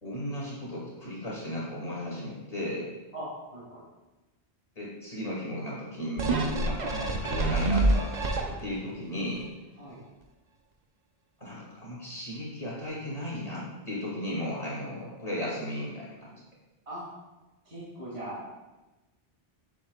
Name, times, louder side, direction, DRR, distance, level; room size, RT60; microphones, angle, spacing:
voice 1, 0.0-2.9 4.8-8.3 8.6-9.5 11.4-16.4, left 1 dB, 40° left, -6 dB, 2.4 m, -35 dB
voice 2, 3.1-3.8 9.8-10.0 16.9-17.0 17.6-18.5, right 1 dB, 90° right, -9 dB, 2.6 m, -40 dB
sound 1, 6.2-8.9 9.4-9.5, right 2 dB, 45° right, 0.8 m, -27 dB
8.4 x 7.3 x 2.3 m, 1.1 s
omnidirectional pair, 1.1 m